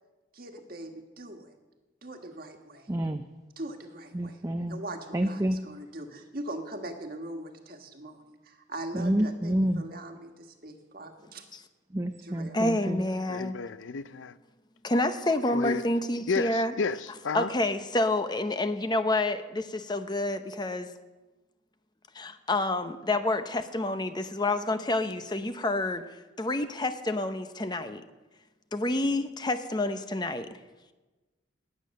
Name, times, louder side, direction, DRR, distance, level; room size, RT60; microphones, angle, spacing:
voice 1, 0.3-1.5 2.0-2.9 3.6-4.4 4.7-11.5 12.2-12.7, right 1 dB, 50° right, 1.6 m, -41 dB
voice 2, 2.9-3.2 4.1-4.8 5.1-5.6 8.9-9.9 11.9-13.0, right 1 dB, 15° right, 0.5 m, -28 dB
voice 3, 12.5-13.6 14.8-16.7 17.3-20.9 22.1-26.1 26.4-28.0 28.7-30.5, left 2 dB, 20° left, 0.7 m, -28 dB
voice 4, 13.3-14.4 15.5-15.8 16.3-17.5, left 4 dB, 80° left, 0.5 m, -31 dB
19.5 x 8.7 x 6.5 m
head